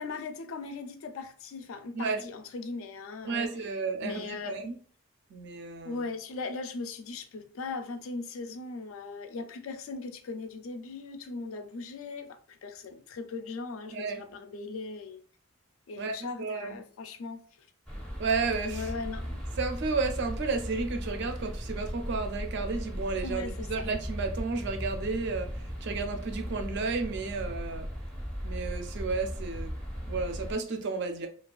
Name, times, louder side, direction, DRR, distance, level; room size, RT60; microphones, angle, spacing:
voice 1, 0.0-3.5 4.0-4.6 5.8-15.2 15.9-17.4 18.7-19.4 23.2-23.9, left 3 dB, 70° left, 0.4 m, -39 dB
voice 2, 3.2-4.8 5.3-6.1 13.9-14.2 16.0-16.8 18.2-18.9 19.6-27.9 28.4-29.7 30.1-31.3, right 4 dB, 55° right, 0.4 m, -32 dB
sound 1, 17.9-30.6, equal, 5° left, 0.5 m, -37 dB
2.4 x 2.3 x 2.2 m
head